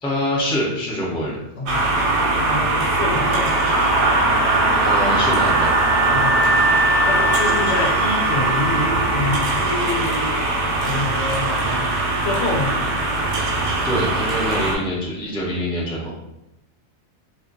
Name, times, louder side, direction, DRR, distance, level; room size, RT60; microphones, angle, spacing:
voice 1, 0.0-1.4 4.8-5.7 13.4-13.5 13.8-16.1, equal, 10° left, -5 dB, 0.3 m, -24 dB
voice 2, 1.6-1.9 2.3-3.6 6.1-6.4 7.0-10.4 10.8-12.8, left 2 dB, 80° left, 0 dB, 0.9 m, -27 dB
sound 1, 1.7-14.7, right 2 dB, 75° right, 0.9 m, -20 dB
sound 2, 3.1-9.9, right 1 dB, 50° left, 0.8 m, -26 dB
2.6 x 2.4 x 2.6 m, 0.89 s
omnidirectional pair, 1.2 m